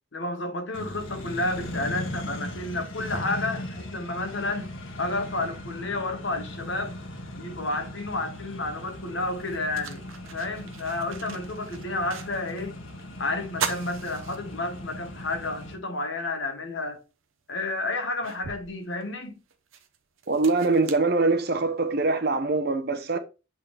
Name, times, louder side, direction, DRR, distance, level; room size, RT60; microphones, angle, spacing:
voice 1, 0.1-4.7 5.0-7.0 7.4-10.0 10.3-12.8 13.2-17.0 17.5-19.4, left 2 dB, 65° left, 1.2 m, -31 dB
Accelerating revving vroom, 0.7-15.7, left 1 dB, 80° left, 1.6 m, -39 dB
sound 1, 8.7-8.8 9.3-12.7 13.0-13.1 13.5-15.0 15.4-15.5 16.9-17.0 17.6-21.8, right 6 dB, 85° right, 0.8 m, -39 dB
voice 2, 20.3-23.2, right 3 dB, 50° right, 0.8 m, -23 dB
7.8 x 3.8 x 3.2 m
head